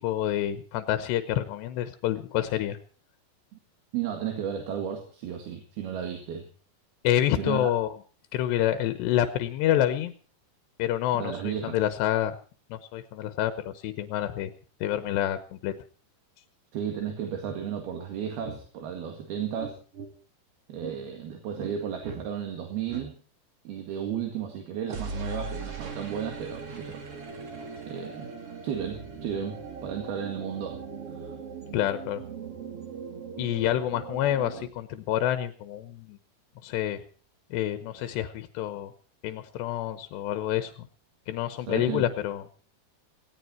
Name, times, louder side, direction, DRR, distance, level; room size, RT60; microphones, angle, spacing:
voice 1, 0.0-2.8 7.0-7.9 8.3-10.1 10.8-12.4 12.7-14.5 14.8-15.7 31.7-32.2 33.4-36.2 36.6-37.0 37.5-38.9 39.2-40.7 41.3-42.4, left 12 dB, 90° left, 10 dB, 3.2 m, -28 dB
voice 2, 3.9-6.5 7.4-7.7 11.1-11.8 16.7-19.8 20.7-23.2 23.7-27.0 27.9-28.3 28.6-30.8 31.1-31.3 41.7-42.1, right 8 dB, 70° right, 4 dB, 3.8 m, -33 dB
sound 1, 17.4-17.6 18.4-18.6 19.6-20.1 20.8-21.0 21.6-21.8 22.0-22.2 22.9-23.1 24.9-34.7, right 5 dB, 40° right, 2.7 m, -39 dB
17.5 x 17.0 x 4.4 m, 0.38 s
omnidirectional pair, 4.9 m